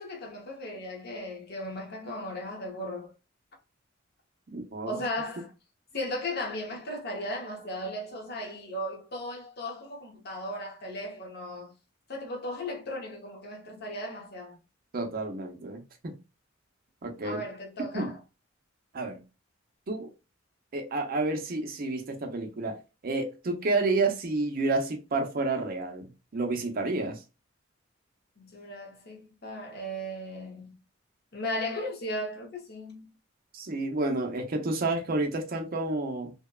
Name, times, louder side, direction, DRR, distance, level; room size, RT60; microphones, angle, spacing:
voice 1, 0.0-3.1 4.9-5.5 5.9-11.7 12.1-14.6 17.2-18.2 28.4-30.7 31.3-33.1, left 1 dB, 55° left, 0.8 m, -36 dB
voice 2, 4.5-5.0 14.9-16.2 17.0-17.4 17.9-18.1 18.9-19.2 19.9-20.1 20.7-22.8 23.0-27.2 33.5-36.3, right 2 dB, 45° right, 0.5 m, -30 dB
2.8 x 2.1 x 2.2 m
head